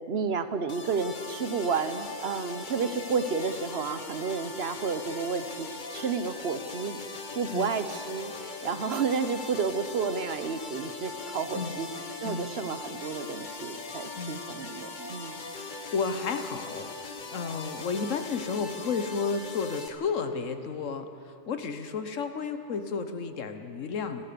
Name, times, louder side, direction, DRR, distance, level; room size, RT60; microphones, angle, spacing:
voice 1, 0.1-11.9 12.2-15.4, right 5 dB, 55° right, 10 dB, 1.1 m, -31 dB
sound 1, 0.7-19.9, left 3 dB, 40° left, 1.3 m, -40 dB
voice 2, 15.2-24.2, left 5 dB, 90° left, 8 dB, 1.5 m, -33 dB
29.5 x 13.0 x 6.9 m, 2.8 s
omnidirectional pair, 1.3 m